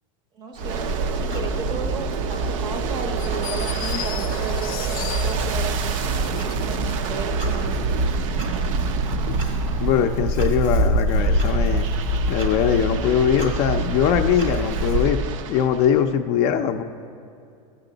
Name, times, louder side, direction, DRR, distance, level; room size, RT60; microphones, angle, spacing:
voice 1, 0.3-6.0 6.4-8.1, right 4 dB, 25° right, 6 dB, 0.7 m, -35 dB
Aircraft, 0.6-10.6 11.1-16.0, right 7 dB, 70° right, 0.6 m, -32 dB
Clock, 0.6-15.0, right 1 dB, 85° right, 2.2 m, -25 dB
sound 1, 3.2-7.1, left 12 dB, 90° left, 0.5 m, -36 dB
voice 2, 9.8-11.9 12.3-15.2 15.5-16.8, left 8 dB, 35° left, 6 dB, 0.4 m, -21 dB
14.0 x 8.2 x 3.9 m, 2.5 s
supercardioid pair, 165°, 17 cm